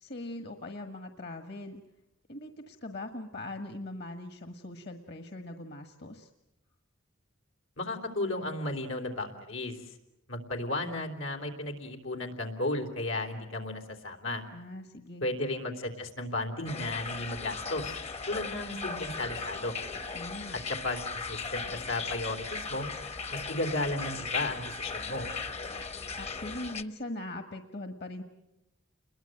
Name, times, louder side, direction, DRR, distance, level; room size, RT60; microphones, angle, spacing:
voice 1, 0.0-1.8 2.3-6.3 14.5-15.2 20.1-20.6 26.2-28.2, left 1 dB, 55° left, 7 dB, 1.5 m, -41 dB
voice 2, 7.8-9.8 10.3-14.4 15.2-18.0 18.3-19.8 20.7-22.9 23.3-25.3, left 2 dB, 90° left, 3 dB, 3.5 m, -34 dB
sound 1, 16.7-26.8, left 4 dB, 30° left, 0.9 m, -37 dB
29.5 x 21.5 x 7.9 m, 0.91 s
head